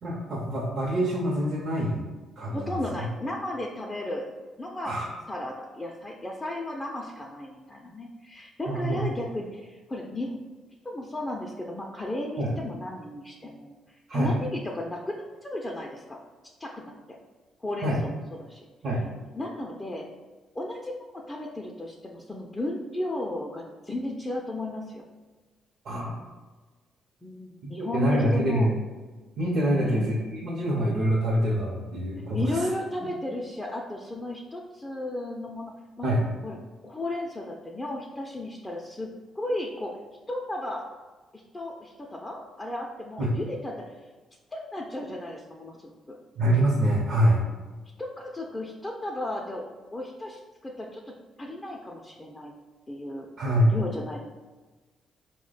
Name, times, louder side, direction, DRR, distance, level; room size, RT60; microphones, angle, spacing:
voice 1, 0.0-2.0 2.4-2.8 4.8-5.1 8.7-9.2 12.4-12.5 14.1-14.3 17.8-18.0 18.8-19.0 25.8-26.1 27.6-28.7 29.4-32.7 36.0-36.3 43.2-43.3 46.3-47.4 53.4-53.7, right 1 dB, 60° right, -5 dB, 0.7 m, -25 dB
voice 2, 2.5-4.3 4.6-5.0 5.3-10.4 10.8-16.2 16.6-16.9 17.6-18.1 18.4-18.6 19.3-20.1 20.5-20.9 21.3-25.0 27.2-28.7 29.7-30.2 32.3-35.7 36.0-36.1 36.4-36.6 36.8-40.0 40.3-40.8 41.5-43.7 44.5-45.9 48.0-52.5 52.9-53.3 53.7-54.2, left 1 dB, 20° left, -1 dB, 0.4 m, -34 dB
4.2 x 2.1 x 3.9 m, 1.3 s
cardioid pair, 90°, 0 cm